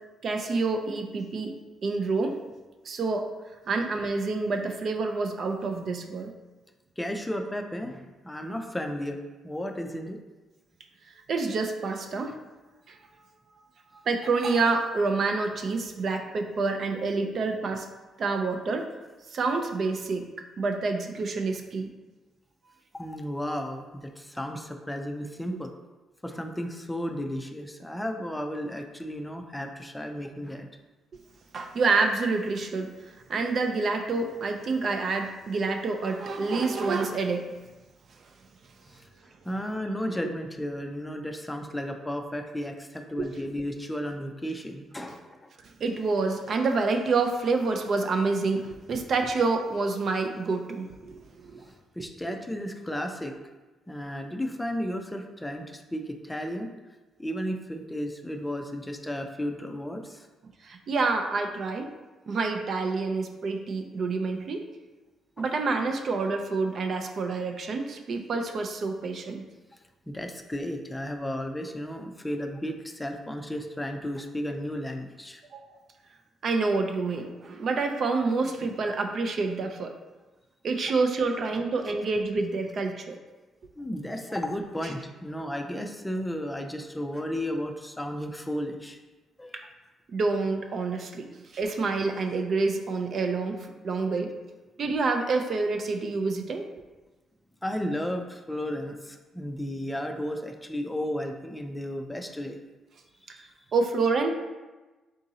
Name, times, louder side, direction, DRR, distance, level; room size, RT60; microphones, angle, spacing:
voice 1, 0.2-1.5 1.8-2.4 2.8-3.3 3.7-6.3 11.3-12.3 12.9-13.0 14.1-17.9 18.2-18.9 19.3-20.3 20.6-21.9 31.5-37.5 43.2-43.3 45.8-51.6 60.6-61.9 62.3-64.6 65.4-69.4 75.5-75.7 76.4-79.9 80.6-83.2 89.5-89.6 90.1-94.3 94.8-96.7 103.3-103.4 103.7-104.3, right 3 dB, 55° right, 5 dB, 0.4 m, -28 dB
voice 2, 7.0-9.2 9.4-10.2 12.3-12.4 22.9-25.7 26.2-30.7 38.9-39.1 39.5-45.5 52.0-53.4 53.9-56.7 57.2-60.3 65.4-65.5 70.1-75.4 83.8-89.0 89.4-89.6 97.6-102.6 103.2-103.5, equal, 10° left, 5 dB, 0.4 m, -34 dB
3.7 x 2.7 x 4.0 m, 1.2 s
cardioid pair, 90°, 0 cm